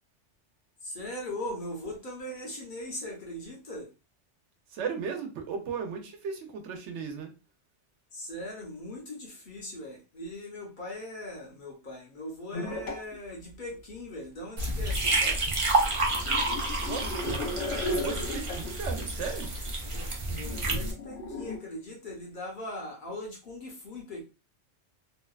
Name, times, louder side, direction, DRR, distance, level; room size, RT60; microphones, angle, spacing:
voice 1, 0.8-3.9 8.1-15.5 19.9-24.3, left 1 dB, 50° left, 0.8 m, -40 dB
voice 2, 4.7-7.3 16.9-19.6, right 6 dB, 85° right, 0.9 m, -36 dB
sound 1, 12.5-13.2 13.7-13.8 14.7-14.8 15.2-15.3 16.1-18.8 19.3-19.4 19.7-20.0 20.2-21.6, left 2 dB, 85° left, 1.0 m, -35 dB
sound 2, 14.6-20.9, right 2 dB, 45° right, 0.4 m, -29 dB
2.8 x 2.2 x 2.3 m
omnidirectional pair, 1.2 m